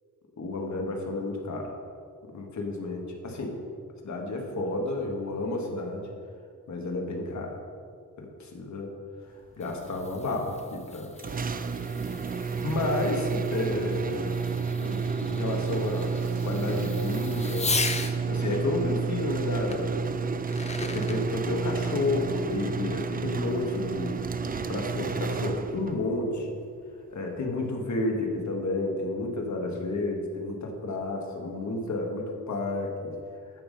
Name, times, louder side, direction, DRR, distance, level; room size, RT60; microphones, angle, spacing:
voice 1, 0.4-1.7 2.3-3.6 4.0-6.1 6.7-7.5 8.2-8.9 9.6-11.1 12.6-14.4 14.8-17.8 18.2-20.0 20.7-26.5 27.1-33.2, left 2 dB, 60° left, 1 dB, 1.7 m, -31 dB
Fireworks, 9.3-18.2 19.7-19.8 20.3-21.2, left 3 dB, 20° left, 0.7 m, -37 dB
sound 1, 11.2-26.1, right 5 dB, 30° right, 0.4 m, -30 dB
11.5 x 7.1 x 5.3 m, 2.3 s
wide cardioid pair, 130°, 33 cm